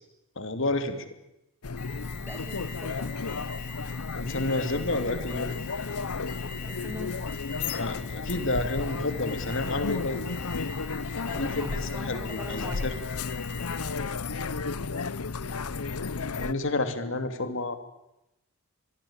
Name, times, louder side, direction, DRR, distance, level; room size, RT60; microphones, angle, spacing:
voice 1, 0.4-1.0 4.1-5.5 7.7-10.2 11.3-12.9 16.4-17.8, left 2 dB, 60° left, 8 dB, 2.8 m, -30 dB
sound 1, 1.6-16.5, left 4 dB, 85° left, 0.9 m, -33 dB
Alarm, 1.8-14.2, left 6 dB, 40° left, 2.5 m, -43 dB
voice 2, 2.2-3.4 6.6-7.9 11.2-12.9, equal, 10° right, 4 dB, 4.2 m, -43 dB
26.0 x 21.5 x 8.9 m, 0.89 s
head